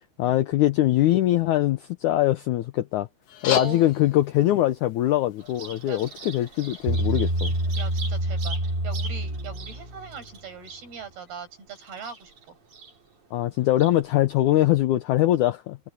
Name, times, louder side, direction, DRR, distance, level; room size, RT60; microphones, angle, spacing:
voice 1, 0.2-3.1 3.4-7.6 13.3-15.8, left 14 dB, 85° left, 1.7 m, -22 dB
sound 1, 3.2-8.2, left 7 dB, 50° left, 2.0 m, -37 dB
voice 2, 3.6-3.9 5.9-6.1 7.7-12.6, right 6 dB, 80° right, 9.0 m, -40 dB
Bird vocalization bird call bird song, 5.4-14.4, right 4 dB, 50° right, 5.3 m, -44 dB
Bass guitar, 6.9-10.3, right 1 dB, 15° right, 2.5 m, -27 dB
omnidirectional pair, 4.4 m